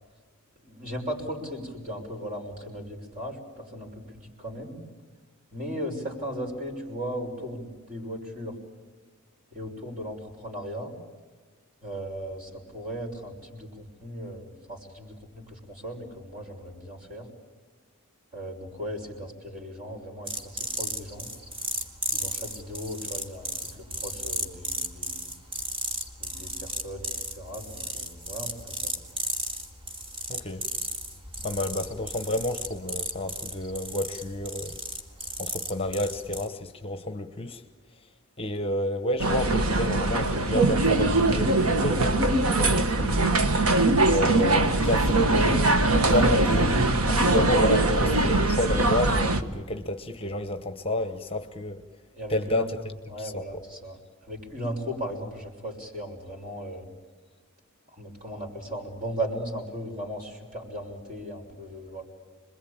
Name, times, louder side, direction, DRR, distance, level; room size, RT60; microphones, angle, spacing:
voice 1, 0.6-4.8 5.5-8.6 9.5-10.9 11.8-17.3 18.3-21.3 22.1-23.5 23.8-25.3 26.2-28.9 52.1-52.7 53.1-54.0 54.3-56.9 57.9-62.0, equal, 40° right, 6.1 m, -37 dB
sound 1, 20.3-36.5, right 1 dB, 25° right, 2.1 m, -35 dB
voice 2, 30.3-30.6 31.4-34.8 35.4-37.6 38.4-43.3 43.7-43.8 44.0-51.8 52.3-52.8 53.2-53.4, left 1 dB, 25° left, 1.0 m, -30 dB
sound 2, 39.2-49.4, right 2 dB, 80° right, 1.5 m, -22 dB
27.0 x 22.0 x 8.9 m
head